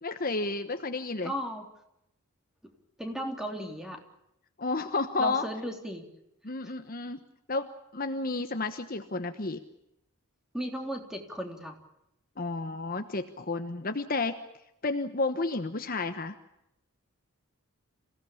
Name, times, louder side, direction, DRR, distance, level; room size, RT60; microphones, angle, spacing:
voice 1, 0.0-1.3 4.6-5.4 6.4-7.2 7.5-9.6 12.4-14.3 14.8-16.4, left 3 dB, 40° left, 8 dB, 1.1 m, -31 dB
voice 2, 1.2-1.6 3.0-4.0 5.2-6.1 10.5-11.7, equal, ahead, 3 dB, 3.4 m, -35 dB
27.0 x 17.0 x 8.6 m, 0.83 s
head